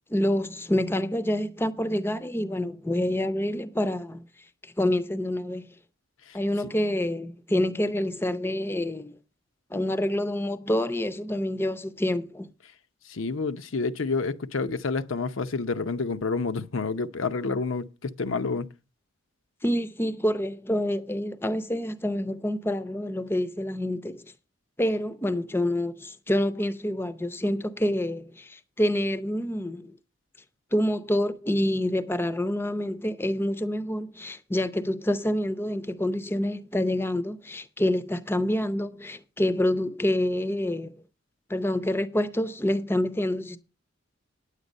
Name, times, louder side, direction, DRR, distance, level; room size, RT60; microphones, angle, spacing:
voice 1, 0.1-4.2 4.6-5.7 6.3-9.2 9.7-12.5 19.6-24.3 24.8-29.9 30.7-41.0 41.5-43.6, left 1 dB, 10° left, 0.6 m, -27 dB
voice 2, 13.1-18.7, left 4 dB, 70° left, 0.7 m, -29 dB
9.8 x 8.2 x 5.3 m
head